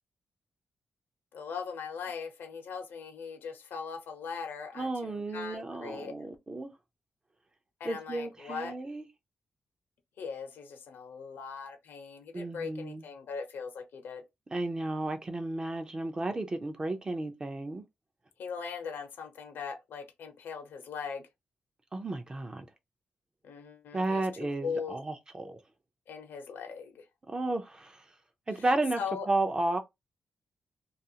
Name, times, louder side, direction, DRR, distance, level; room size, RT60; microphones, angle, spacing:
voice 1, 1.3-6.1 7.8-8.7 10.2-14.2 18.4-21.3 23.4-25.0 26.1-27.0 29.0-29.3, left 6 dB, 80° left, 0.8 m, -40 dB
voice 2, 4.7-6.7 7.8-9.1 12.3-13.0 14.5-17.8 21.9-22.7 23.9-25.6 27.3-28.0 28.5-29.0 29.3-29.8, right 2 dB, 25° right, 0.5 m, -33 dB
2.4 x 2.4 x 2.7 m
cardioid pair, 115°, 3 cm